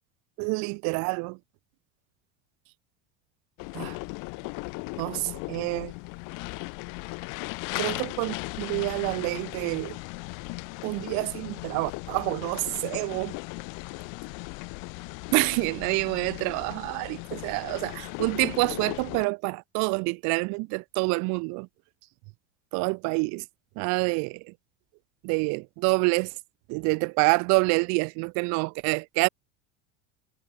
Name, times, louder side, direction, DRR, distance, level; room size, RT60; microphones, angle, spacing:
voice 1, 0.4-1.4 3.7-4.0 5.0-5.9 7.8-10.0 10.8-13.4 15.3-21.7 22.7-23.5 23.8-24.5 25.2-26.3 26.7-29.3, right 32 dB, 50° right, 0.5 m, -27 dB
sound 1, 3.6-19.3, left 30 dB, 55° left, 1.0 m, -37 dB
hypercardioid pair, 90°, 37 cm